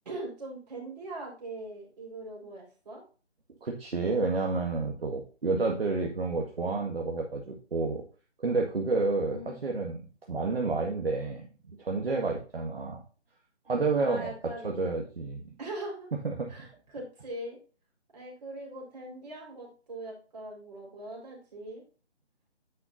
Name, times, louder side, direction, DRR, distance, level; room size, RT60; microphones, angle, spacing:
voice 1, 0.0-3.0 9.3-9.5 14.0-14.6 15.6-16.1 16.5-16.7 16.9-17.6 18.1-21.8, right 1 dB, 35° right, -2 dB, 4.5 m, -41 dB
voice 2, 3.6-8.0 8.4-11.5 11.8-13.0 13.7-15.4 16.2-16.7, right 3 dB, 55° right, 0 dB, 1.8 m, -30 dB
9.6 x 6.5 x 2.7 m, 0.36 s
figure-of-eight pair, 165°, 34 cm